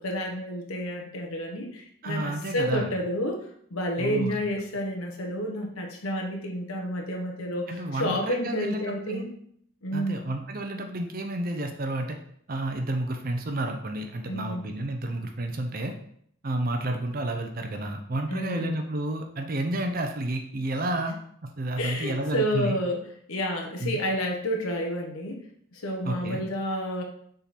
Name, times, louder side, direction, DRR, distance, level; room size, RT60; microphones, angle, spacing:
voice 1, 0.0-9.3 9.8-10.2 14.3-14.6 18.3-18.8 21.8-23.0 23.3-25.4 25.7-27.0, equal, 80° left, 1 dB, 1.1 m, -30 dB
voice 2, 2.0-2.9 4.0-4.3 7.7-9.3 9.9-12.2 12.5-15.9 16.4-22.7 23.8-24.0 26.0-26.4, right 1 dB, 40° right, 5 dB, 0.6 m, -31 dB
7.0 x 3.8 x 4.2 m, 0.66 s
head